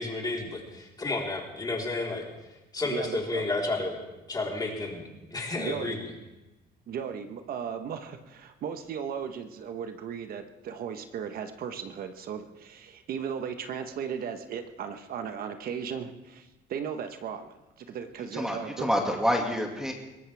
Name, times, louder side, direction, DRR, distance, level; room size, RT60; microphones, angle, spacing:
voice 1, 0.0-2.3 2.7-4.0 4.3-6.1, left 2 dB, 25° left, -1 dB, 4.0 m, -31 dB
voice 2, 2.8-3.4 5.5-6.0 6.9-18.9, right 7 dB, 60° right, 7 dB, 1.2 m, -36 dB
voice 3, 18.3-19.9, equal, 5° right, 1 dB, 2.1 m, -27 dB
22.5 x 17.5 x 3.5 m, 1.0 s
cardioid pair, 110°, 17 cm